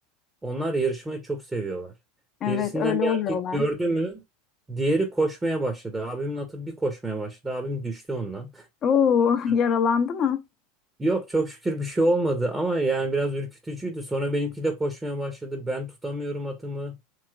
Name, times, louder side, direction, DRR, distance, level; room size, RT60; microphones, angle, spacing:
voice 1, 0.4-1.9 2.4-4.2 4.7-8.7 11.0-17.0, right 2 dB, 15° right, 0.7 m, -27 dB
voice 2, 2.4-3.6 8.8-10.4, left 7 dB, 40° left, 0.4 m, -23 dB
3.1 x 2.9 x 2.2 m
hypercardioid pair, 90°, 0 cm